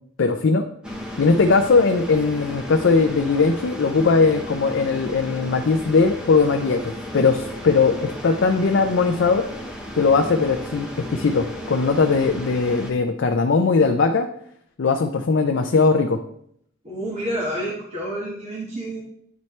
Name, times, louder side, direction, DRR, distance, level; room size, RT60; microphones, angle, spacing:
voice 1, 0.2-0.7 1.2-6.8 7.1-9.4 10.0-14.3 14.8-16.2, left 4 dB, 65° left, 5 dB, 0.4 m, -19 dB
sound 1, 0.8-12.9, equal, 5° right, 0.7 m, -35 dB
voice 2, 16.8-19.0, right 1 dB, 30° right, -5 dB, 1.3 m, -29 dB
9.4 x 4.3 x 3.2 m, 0.69 s
head